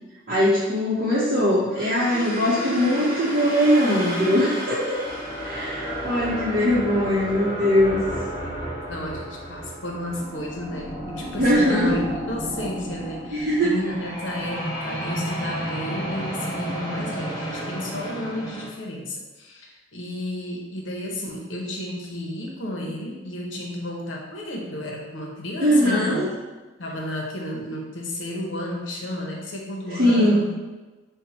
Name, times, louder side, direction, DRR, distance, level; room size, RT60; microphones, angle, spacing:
voice 1, 0.3-4.9 5.4-8.0 11.4-12.0 13.3-13.8 25.6-26.3 30.0-30.5, equal, 45° right, -9 dB, 0.7 m, -21 dB
sound 1, 1.7-18.7, right 1 dB, 20° left, 1.1 m, -32 dB
voice 2, 7.7-8.1 8.4-26.2 26.8-30.5, left 1 dB, 70° left, -1 dB, 0.7 m, -32 dB
4.4 x 2.1 x 4.1 m, 1.2 s
head